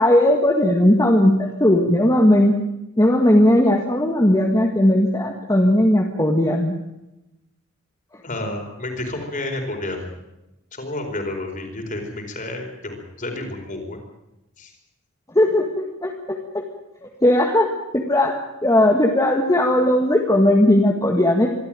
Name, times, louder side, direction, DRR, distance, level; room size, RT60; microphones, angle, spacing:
voice 1, 0.0-2.6 3.0-6.7 15.4-16.1 17.0-18.3 18.6-21.5, left 1 dB, 15° left, 1 dB, 1.8 m, -17 dB
voice 2, 8.2-10.1 10.7-14.0 14.6-14.7, left 2 dB, 35° left, 3 dB, 4.7 m, -30 dB
25.0 x 13.5 x 9.1 m, 0.95 s
head